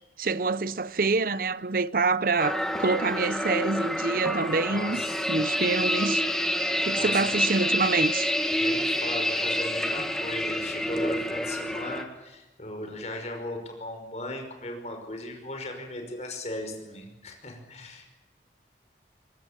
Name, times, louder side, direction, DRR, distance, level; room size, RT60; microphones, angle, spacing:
voice 1, 0.2-5.0 5.3-6.3 6.8-8.3, right 4 dB, 50° right, 0.7 m, -26 dB
sound 1, 2.4-12.0, equal, 5° left, 1.8 m, -28 dB
voice 2, 4.6-5.2 6.9-7.4 8.5-18.1, left 1 dB, 40° left, 5.4 m, -37 dB
22.5 x 20.0 x 8.8 m
head